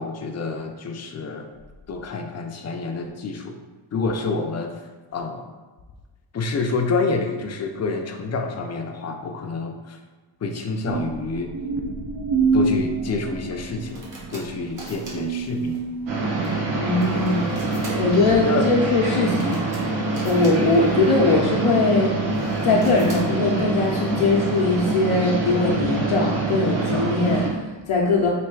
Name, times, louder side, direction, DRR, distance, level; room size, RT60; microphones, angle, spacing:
voice 1, 0.0-1.5 1.9-3.6 3.9-4.7 5.1-5.5 6.3-10.0 10.4-11.5 12.5-15.8 18.4-18.7, left 3 dB, 35° left, 4 dB, 0.5 m, -28 dB
sound 1, 10.9-16.6, right 4 dB, 55° right, 0.6 m, -27 dB
sound 2, 13.4-24.6, right 1 dB, 40° right, 1.2 m, -44 dB
sound 3, 16.1-27.5, right 3 dB, 70° right, 1.1 m, -25 dB
voice 2, 16.8-19.6 20.2-22.2 22.6-28.3, left 3 dB, 85° left, -3 dB, 0.7 m, -21 dB
3.3 x 2.7 x 4.5 m, 1.3 s
cardioid pair, 120°, 48 cm